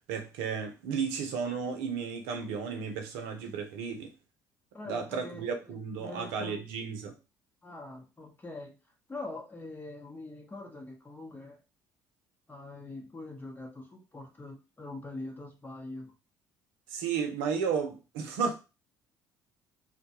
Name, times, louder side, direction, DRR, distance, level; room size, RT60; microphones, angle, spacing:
voice 1, 0.1-4.1 4.9-7.1 16.9-18.5, right 6 dB, 75° right, 0.6 m, -33 dB
voice 2, 4.7-6.6 7.6-8.7 9.1-11.6 12.5-16.1, left 2 dB, 20° left, 0.9 m, -43 dB
2.2 x 2.2 x 2.8 m
hypercardioid pair, 60°, 9 cm